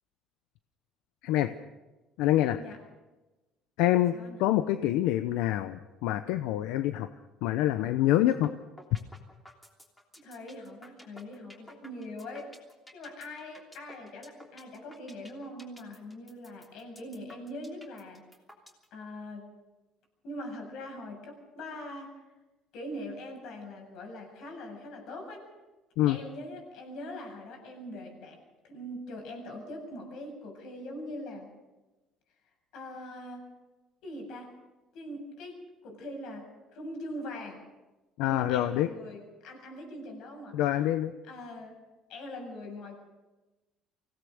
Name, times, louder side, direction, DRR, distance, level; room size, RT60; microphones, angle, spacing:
voice 1, 2.2-2.6 3.8-4.1 4.4-7.1 7.4-8.5 26.0-26.2 38.2-38.9 40.5-41.1, left 13 dB, 90° left, 10 dB, 0.8 m, -26 dB
sound 1, 8.3-8.5 8.8-18.8, equal, 10° left, 3.2 m, -51 dB
voice 2, 10.2-12.5 12.9-18.2 18.9-19.5 20.2-22.2 22.7-25.5 26.0-28.4 28.6-31.5 32.4-33.5 34.0-34.5 34.9-37.6 38.2-40.6 41.3-41.8 42.1-43.0, left 1 dB, 65° left, 3 dB, 7.7 m, -42 dB
24.5 x 17.5 x 6.5 m, 1.1 s
cardioid pair, 150°, 0 cm